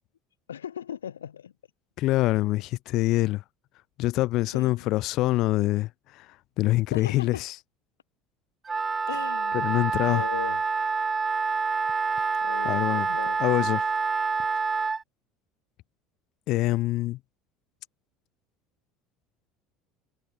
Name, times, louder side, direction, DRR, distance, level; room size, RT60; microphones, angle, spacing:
voice 1, 0.5-1.5 4.5-4.9 6.9-7.4 9.1-10.6 12.4-13.4, left 9 dB, 75° left, 0.4 m, -38 dB
voice 2, 2.0-3.4 4.0-7.5 9.5-10.2 12.6-13.1 13.4-13.8 16.5-17.2, left 17 dB, 50° left, 0.7 m, -25 dB
Wind instrument woodwind instrument, 8.7-15.0, right 4 dB, 20° right, 0.4 m, -27 dB
figure-of-eight pair, 65°, 0 cm